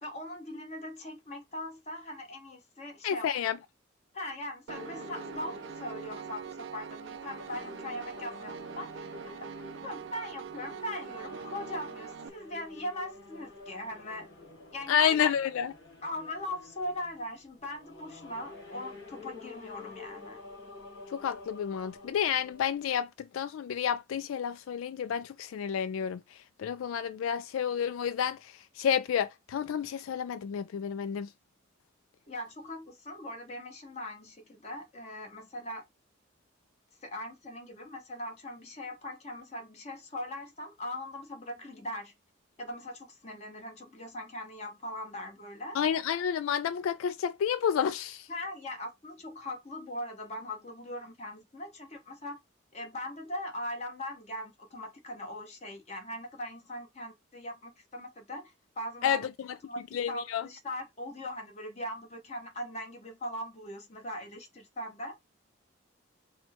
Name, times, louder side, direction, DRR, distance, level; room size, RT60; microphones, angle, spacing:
voice 1, 0.0-3.6 4.1-9.1 9.4-9.5 9.8-14.3 14.7-15.3 16.0-20.4 32.3-35.8 37.0-42.1 42.6-45.8 48.3-52.4 52.7-59.3 59.7-65.2, left 1 dB, 30° left, 1.3 m, -40 dB
voice 2, 3.0-3.6 14.9-15.7 21.1-26.2 26.6-31.3 45.7-48.3 59.0-59.2 59.9-60.4, left 8 dB, 80° left, 0.3 m, -30 dB
sound 1, 4.7-22.8, left 3 dB, 55° left, 2.3 m, -49 dB
Piano, 4.7-12.3, right 7 dB, 65° right, 0.4 m, -43 dB
4.3 x 2.2 x 4.3 m
head